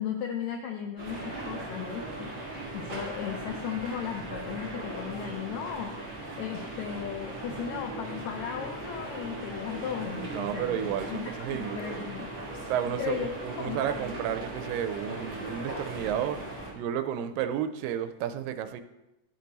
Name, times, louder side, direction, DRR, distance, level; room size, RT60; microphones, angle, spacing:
voice 1, 0.0-2.3 2.7-12.3 13.0-13.3 13.6-14.0, left 8 dB, 85° left, 4 dB, 1.6 m, -36 dB
sound 1, 1.0-16.7, right 1 dB, 25° right, 1.2 m, -38 dB
voice 2, 10.3-12.1 12.7-16.5 16.7-18.8, right 9 dB, 90° right, 9 dB, 2.2 m, -32 dB
12.0 x 4.6 x 4.0 m, 0.97 s
omnidirectional pair, 3.8 m